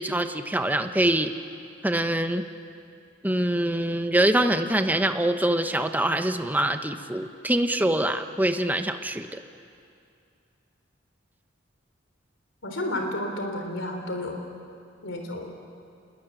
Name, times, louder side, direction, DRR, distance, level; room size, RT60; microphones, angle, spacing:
voice 1, 0.0-1.3 1.8-2.5 3.2-9.4, right 1 dB, 10° right, 7 dB, 1.1 m, -24 dB
voice 2, 12.6-14.4 15.0-15.5, left 1 dB, 80° left, 3 dB, 3.5 m, -31 dB
27.5 x 21.5 x 9.2 m, 2.4 s
head